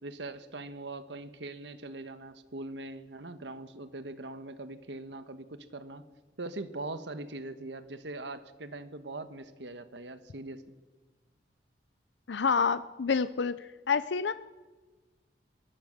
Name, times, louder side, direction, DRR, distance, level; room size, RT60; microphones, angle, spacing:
voice 1, 0.0-6.0 6.4-10.8, right 2 dB, 80° right, 11 dB, 1.4 m, -41 dB
voice 2, 12.3-14.3, left 5 dB, 80° left, 14 dB, 0.6 m, -28 dB
23.5 x 19.5 x 6.6 m, 1.3 s
head